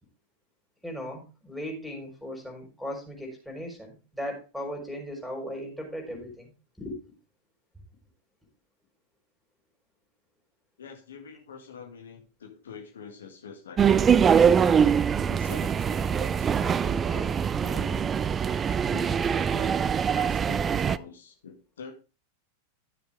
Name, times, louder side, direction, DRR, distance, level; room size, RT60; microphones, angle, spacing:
voice 1, 0.8-6.5 6.8-7.1, equal, ahead, 2 dB, 4.6 m, -37 dB
voice 2, 10.8-14.9 15.3-18.1 18.9-19.8 20.1-21.9, left 6 dB, 65° left, 3 dB, 2.0 m, -45 dB
sound 1, 13.8-21.0, right 7 dB, 20° right, 0.4 m, -23 dB
12.5 x 7.2 x 3.5 m, 0.30 s
figure-of-eight pair, 90°, 0 cm